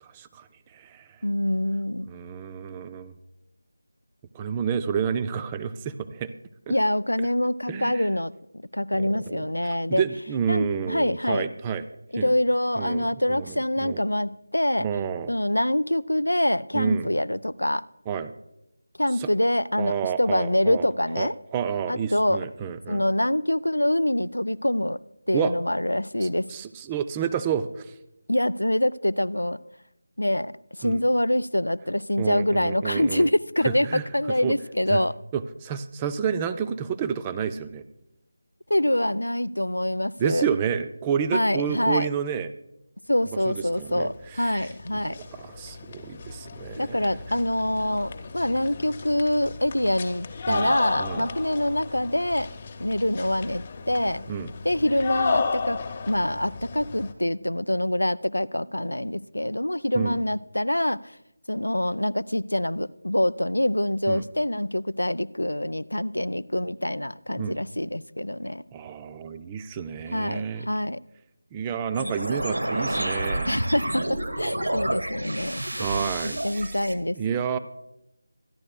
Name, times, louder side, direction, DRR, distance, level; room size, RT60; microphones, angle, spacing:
voice 1, 0.1-0.5 0.7-1.1 2.1-3.1 4.3-6.3 6.7-6.8 7.7-8.1 9.0-11.8 12.2-12.3 12.8-14.0 14.8-15.3 16.7-17.1 18.1-18.3 19.2-19.3 19.8-20.9 21.2-23.0 25.3-25.5 26.2-27.9 30.8-31.0 32.2-33.3 33.6-34.0 34.4-34.5 34.9-35.0 35.3-37.8 40.2-42.5 43.5-44.7 44.9-47.1 50.5-51.3 54.3-54.5 60.0-60.2 64.1-64.2 67.3-67.6 68.7-70.7 71.5-73.5 75.8-76.8 77.2-77.6, right 7 dB, 15° right, 11 dB, 0.3 m, -30 dB
voice 2, 1.2-2.1 6.7-10.0 10.5-11.5 12.1-14.9 15.3-17.8 19.0-21.3 21.9-22.5 22.9-25.0 25.3-26.5 28.3-29.6 30.2-30.5 30.8-35.1 38.7-40.5 41.3-42.1 43.1-45.2 46.8-52.5 52.8-54.2 54.6-55.8 56.1-61.2 61.5-68.6 70.1-71.0 73.5-75.6 76.4-77.2, left 1 dB, 75° left, 17 dB, 0.4 m, -25 dB
sound 1, 44.1-44.2 44.4-57.1, left 4 dB, 25° left, 0.8 m, -34 dB
sound 2, 71.9-76.9, right 1 dB, 70° right, 1.2 m, -29 dB
25.5 x 10.5 x 2.2 m, 0.87 s
figure-of-eight pair, 160°, 0 cm